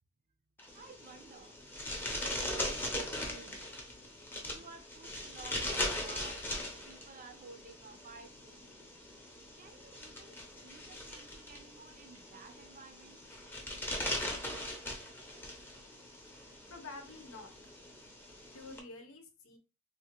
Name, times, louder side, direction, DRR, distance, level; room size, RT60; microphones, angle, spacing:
sound 1, 0.6-18.8, left 1 dB, 10° left, 0.7 m, -40 dB
voice 1, 0.7-1.6 2.0-6.4 6.8-8.7 9.6-13.2, right 4 dB, 40° right, 6 dB, 0.6 m, -54 dB
voice 2, 16.7-17.5 18.5-19.6, left 3 dB, 85° left, 5 dB, 0.8 m, -48 dB
3.5 x 2.5 x 2.9 m, 0.32 s
head